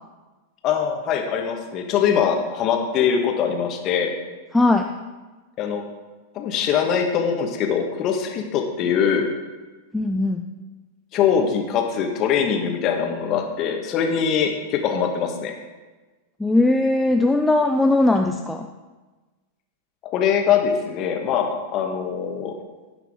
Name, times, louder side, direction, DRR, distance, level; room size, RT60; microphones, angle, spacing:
voice 1, 0.6-4.1 5.6-5.8 6.3-9.3 11.1-15.5 20.1-22.5, left 7 dB, 40° left, 3 dB, 1.6 m, -22 dB
voice 2, 4.5-4.9 9.9-10.5 16.4-18.7, left 2 dB, 5° left, 4 dB, 0.6 m, -19 dB
16.5 x 5.8 x 3.8 m, 1.2 s
figure-of-eight pair, 90°, 0 cm